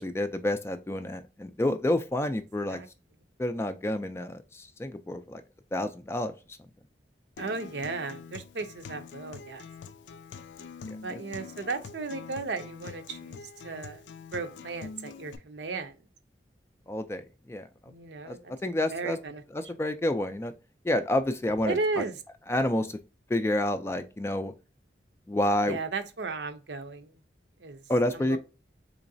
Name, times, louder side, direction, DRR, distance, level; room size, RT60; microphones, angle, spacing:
voice 1, 0.0-2.8 3.4-5.4 5.7-6.3 16.9-17.7 18.3-18.4 18.6-19.2 19.5-20.5 20.8-21.8 22.5-23.0 23.3-24.5 25.3-25.8 27.9-28.4, left 1 dB, 15° left, 0.3 m, -29 dB
Acoustic guitar, 7.4-15.4, left 5 dB, 85° left, 0.4 m, -45 dB
voice 2, 7.4-9.6 11.0-14.1 14.3-16.0 17.9-18.5 18.9-19.4 21.6-22.2 25.7-27.2 27.6-27.8 28.1-28.4, right 3 dB, 75° right, 0.6 m, -35 dB
3.8 x 3.0 x 2.6 m
head